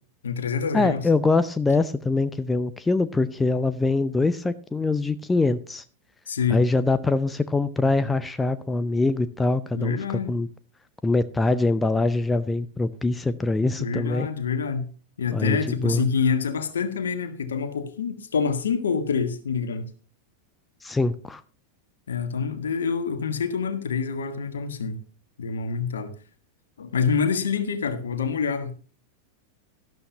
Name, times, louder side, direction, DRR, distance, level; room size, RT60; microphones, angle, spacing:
voice 1, 0.2-1.0 6.3-6.6 9.7-10.3 13.8-14.9 15.2-19.9 22.1-25.0 25.4-26.1 26.8-28.7, left 6 dB, 65° left, 1.5 m, -26 dB
voice 2, 0.7-5.8 6.5-10.5 11.0-14.3 15.3-16.0 20.8-21.4, left 3 dB, 10° left, 0.6 m, -23 dB
12.5 x 12.0 x 2.8 m
figure-of-eight pair, 90°, 0 cm